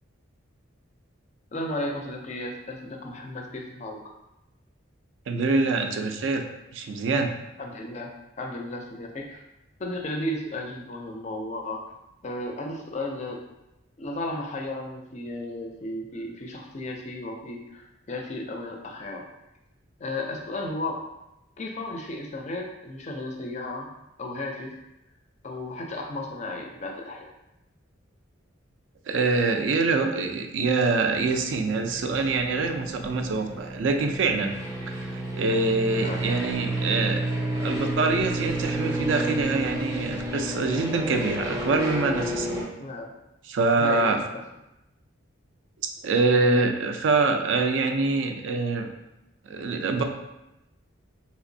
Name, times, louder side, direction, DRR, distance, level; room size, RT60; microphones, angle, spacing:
voice 1, 1.5-4.0 7.6-9.4 9.8-11.8 12.2-13.4 14.0-19.2 20.0-21.0 21.6-23.9 24.2-24.8 25.4-27.3 36.0-36.2 42.8-43.2 43.8-44.2, left 1 dB, 35° left, 2 dB, 0.4 m, -34 dB
voice 2, 5.3-6.5 6.7-7.3 29.1-34.5 34.9-37.2 37.6-42.7 43.5-44.2 45.8-48.9 49.5-50.0, right 3 dB, 65° right, 5 dB, 0.3 m, -25 dB
sound 1, 31.0-42.6, right 1 dB, 15° right, 0.5 m, -31 dB
3.3 x 2.9 x 2.6 m, 0.91 s
head